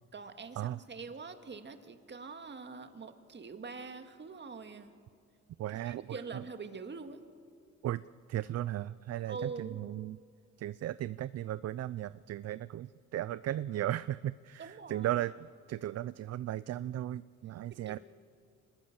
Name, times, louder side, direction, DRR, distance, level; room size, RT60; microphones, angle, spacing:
voice 1, 0.1-4.9 5.7-7.2 9.2-9.8 14.6-15.2 17.7-18.0, right 4 dB, 35° right, 8 dB, 2.0 m, -44 dB
voice 2, 5.6-6.1 7.8-8.0 8.3-10.2 10.6-15.3 15.7-18.0, right 13 dB, 55° right, 17 dB, 0.5 m, -36 dB
25.5 x 20.5 x 7.3 m, 2.2 s
cardioid pair, 90°, 30 cm